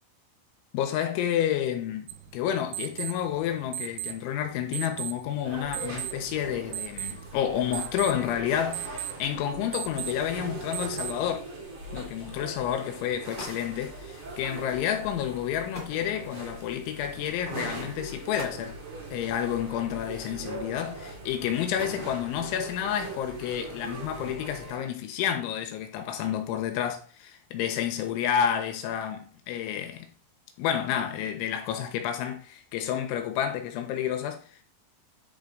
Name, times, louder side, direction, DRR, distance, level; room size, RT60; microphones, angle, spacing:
voice 1, 0.7-11.5 11.9-18.8 19.1-30.1 30.6-34.4, left 9 dB, 85° left, 3.5 m, -30 dB
sound 1, 2.1-11.4, right 14 dB, 80° right, 2.8 m, -39 dB
sound 2, 5.4-24.8, right 2 dB, 35° right, 2.5 m, -41 dB
sound 3, 10.8-11.2 12.2-12.4 13.0-13.1 13.3-13.7 15.7-16.6 17.5-17.7 18.2-18.8 20.1-20.6 21.4-22.5, right 1 dB, 20° right, 1.4 m, -44 dB
10.5 x 4.7 x 4.0 m
omnidirectional pair, 5.4 m